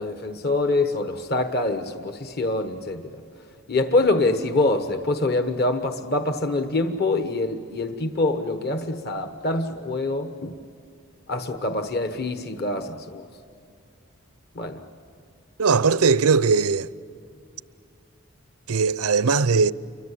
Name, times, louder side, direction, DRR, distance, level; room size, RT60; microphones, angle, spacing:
voice 1, 0.0-3.2 3.7-10.6 11.3-13.2 14.5-14.8, left 2 dB, 45° left, 1.1 m, -25 dB
voice 2, 15.6-16.9 18.7-19.7, right 5 dB, 85° right, 0.6 m, -19 dB
29.0 x 24.0 x 8.5 m
head